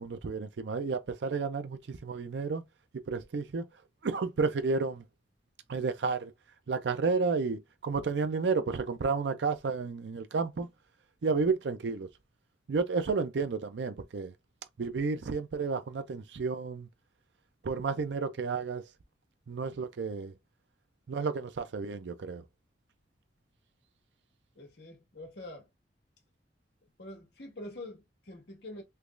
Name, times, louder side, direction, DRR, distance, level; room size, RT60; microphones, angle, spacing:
voice 1, 0.0-2.6 3.1-3.7 4.0-5.0 5.7-6.3 6.7-10.7 11.2-12.1 12.7-14.3 14.8-16.9 17.6-18.8 19.5-20.3 21.1-22.4, right 4 dB, 80° right, 0.5 m, -31 dB
voice 2, 24.5-25.7 27.0-28.8, left 1 dB, 70° left, 1.5 m, -45 dB
3.4 x 3.0 x 2.4 m
head